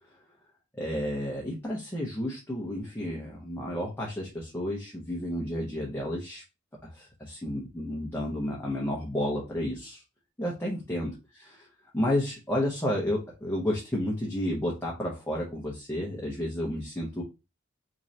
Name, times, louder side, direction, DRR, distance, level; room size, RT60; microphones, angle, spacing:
voice 1, 0.8-6.4 6.8-10.0 10.4-11.7 11.9-17.2, left 1 dB, 10° left, -3 dB, 0.7 m, -31 dB
3.7 x 3.1 x 2.7 m, 0.27 s
head